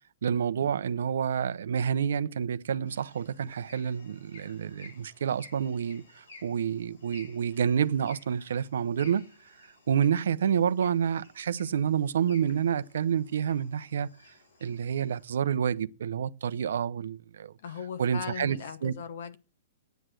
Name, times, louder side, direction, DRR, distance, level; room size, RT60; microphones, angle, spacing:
voice 1, 0.2-9.3 9.9-14.1 14.6-17.5 18.0-18.9, right 8 dB, 80° right, 0.7 m, -28 dB
sound 1, 2.9-15.3, left 3 dB, 85° left, 5.6 m, -55 dB
voice 2, 17.6-19.4, left 7 dB, 65° left, 1.0 m, -38 dB
9.2 x 8.3 x 7.7 m
hypercardioid pair, 160°, 0 cm